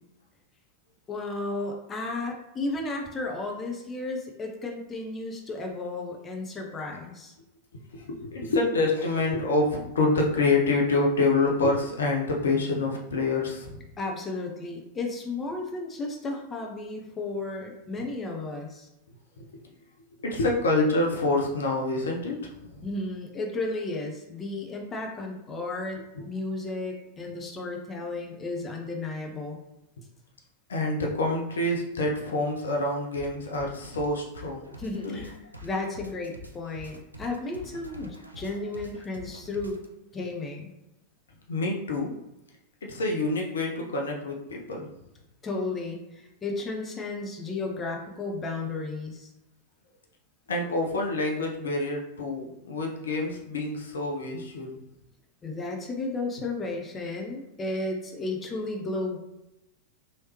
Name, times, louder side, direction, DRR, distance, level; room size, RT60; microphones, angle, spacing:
voice 1, 1.1-7.3 14.0-18.9 22.8-26.0 26.3-29.6 34.8-35.3 35.6-39.8 40.1-40.7 45.4-49.3 55.4-59.2, left 2 dB, 20° left, 1 dB, 0.6 m, -33 dB
voice 2, 7.9-13.9 19.4-19.5 20.2-22.8 26.2-26.3 30.7-34.7 35.0-35.2 41.5-42.1 42.8-44.9 50.5-54.8, left 2 dB, 65° left, 0 dB, 0.6 m, -27 dB
sound 1, 33.1-39.9, left 1 dB, 85° right, 0.4 m, -45 dB
3.1 x 2.8 x 3.1 m, 0.92 s
figure-of-eight pair, 90°, 0 cm